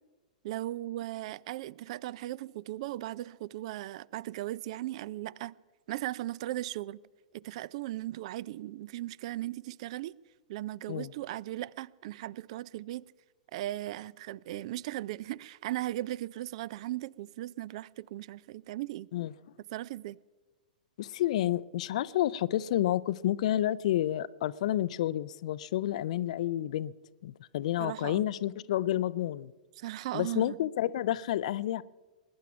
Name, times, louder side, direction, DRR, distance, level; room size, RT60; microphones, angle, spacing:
voice 1, 0.4-5.5 5.9-7.0 7.3-10.2 10.5-13.1 13.5-19.1 19.7-20.2 27.8-28.2 29.8-30.6, right 15 dB, 50° right, 0.4 m, -37 dB
voice 2, 21.0-26.9 27.2-29.5 30.1-31.8, left 13 dB, 55° left, 0.4 m, -30 dB
20.5 x 10.5 x 5.8 m
figure-of-eight pair, 105°, 4 cm